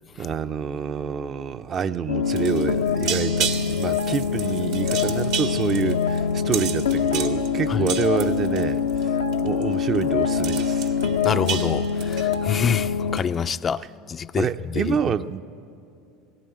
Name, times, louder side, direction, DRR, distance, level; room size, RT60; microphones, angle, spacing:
voice 1, 0.2-8.8 9.4-10.9 14.4-15.4, right 7 dB, 40° right, 0.6 m, -27 dB
sound 1, 2.1-13.2, left 6 dB, 85° left, 0.6 m, -24 dB
sound 2, 2.3-9.0 9.3-9.6 9.9-10.0 10.3-12.8 13.2-13.5, right 8 dB, 65° right, 1.4 m, -32 dB
voice 2, 11.2-13.8 14.1-15.0, left 7 dB, 30° left, 0.4 m, -26 dB
18.0 x 16.5 x 9.1 m
hypercardioid pair, 80°, 0 cm